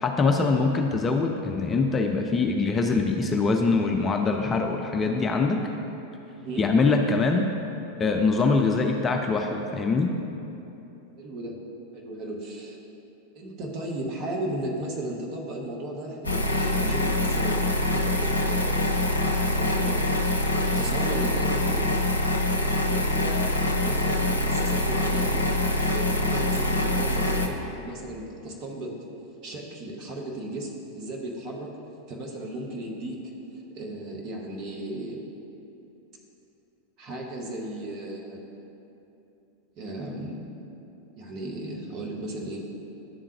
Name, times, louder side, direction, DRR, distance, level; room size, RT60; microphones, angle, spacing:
voice 1, 0.0-5.6 6.6-7.5 8.0-10.1, left 4 dB, 20° left, 3 dB, 0.4 m, -23 dB
voice 2, 11.2-11.5 11.9-12.8 13.3-18.9 19.3-20.1 20.5-21.9 22.8-23.5 23.8-25.5 25.9-28.9 29.4-31.7 32.1-33.2 33.7-35.2 37.0-38.4 39.8-40.4 41.2-42.6, right 1 dB, 35° right, -1 dB, 1.0 m, -35 dB
sound 1, 16.2-27.5, left 1 dB, 80° left, 0.4 m, -25 dB
10.5 x 3.6 x 2.8 m, 2.9 s
figure-of-eight pair, 90°, 0 cm